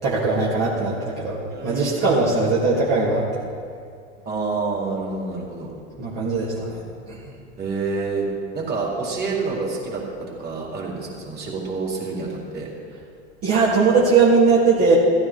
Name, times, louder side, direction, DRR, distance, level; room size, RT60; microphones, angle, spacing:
voice 1, 0.0-3.4 6.0-6.8 7.1-7.2 13.4-14.9, right 4 dB, 40° right, -8 dB, 3.3 m, -19 dB
voice 2, 1.5-2.0 4.3-5.7 7.6-8.3 8.5-12.7, right 4 dB, 25° right, -3 dB, 4.5 m, -28 dB
15.0 x 14.5 x 4.7 m, 2.3 s
hypercardioid pair, 105°, 36 cm